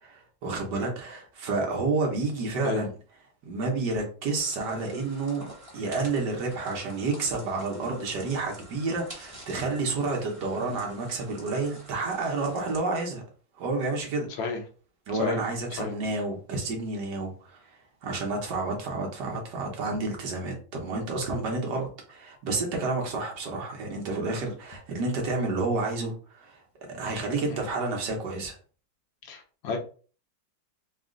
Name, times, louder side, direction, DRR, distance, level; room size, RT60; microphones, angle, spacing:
voice 1, 0.0-2.9 3.4-5.4 5.7-13.2 13.6-14.3 15.1-17.6 18.0-26.6 26.9-28.6, right 3 dB, 65° right, 1.6 m, -30 dB
sound 1, 4.4-12.8, right 1 dB, 20° right, 1.0 m, -48 dB
voice 2, 29.2-29.8, left 5 dB, 75° left, 1.6 m, -32 dB
4.2 x 2.4 x 3.7 m
omnidirectional pair, 2.1 m